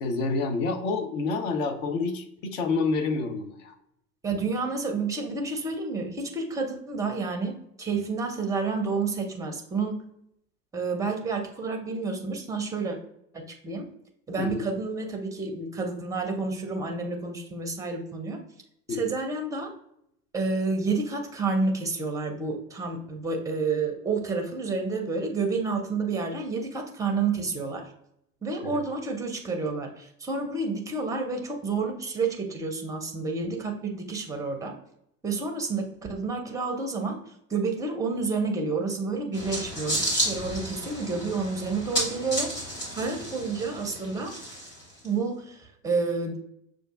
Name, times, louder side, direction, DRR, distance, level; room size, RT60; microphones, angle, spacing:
voice 1, 0.0-3.7 14.4-14.6 18.9-19.0 28.6-28.8, left 3 dB, 55° left, 7 dB, 0.8 m, -28 dB
voice 2, 4.2-10.1 10.7-13.0 13.3-13.9 14.3-18.4 18.9-19.7 20.3-27.9 28.4-34.7 35.2-37.2 37.5-44.3 45.0-46.4, right 4 dB, 5° right, 4 dB, 0.5 m, -30 dB
sound 1, 39.3-45.1, right 1 dB, 85° left, 1.3 m, -32 dB
6.3 x 2.4 x 2.4 m, 0.76 s
figure-of-eight pair, 80°, 47 cm